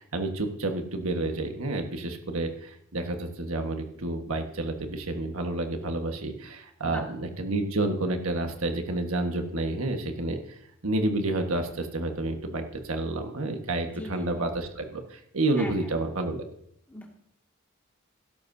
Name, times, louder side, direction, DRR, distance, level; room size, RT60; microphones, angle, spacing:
voice 1, 0.0-10.4 10.8-16.4, right 2 dB, 90° right, 4 dB, 1.5 m, -30 dB
voice 2, 13.9-14.3 15.6-15.7 16.9-17.1, left 1 dB, 10° left, -1 dB, 2.1 m, -39 dB
16.0 x 13.0 x 2.8 m, 0.73 s
head